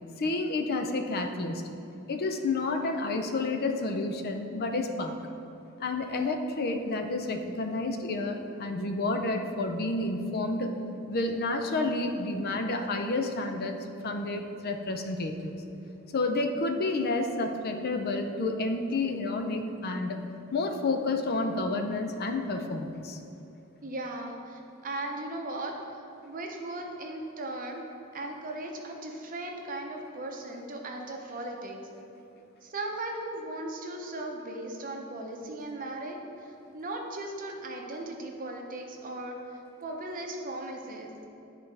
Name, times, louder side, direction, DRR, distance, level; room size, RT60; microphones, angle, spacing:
voice 1, 0.2-1.6 2.1-5.2 5.8-10.7 11.1-13.8 14.0-15.6 16.1-20.2 20.5-23.2, left 2 dB, 45° left, 5 dB, 0.4 m, -30 dB
voice 2, 23.8-27.8 28.1-31.8 32.6-41.1, right 2 dB, 40° right, 2 dB, 0.7 m, -37 dB
10.0 x 4.1 x 3.3 m, 2.8 s
head